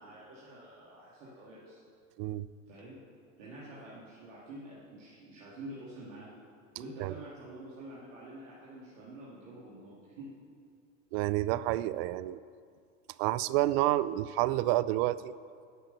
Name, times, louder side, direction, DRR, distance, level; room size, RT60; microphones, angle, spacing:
voice 1, 0.0-1.8 2.7-3.0 3.4-6.3 6.8-10.3, right 1 dB, 75° right, -8 dB, 2.4 m, -47 dB
voice 2, 11.1-12.4 13.2-15.3, right 16 dB, 55° right, 17 dB, 0.5 m, -29 dB
11.0 x 6.4 x 6.7 m, 2.3 s
hypercardioid pair, 85°, 38 cm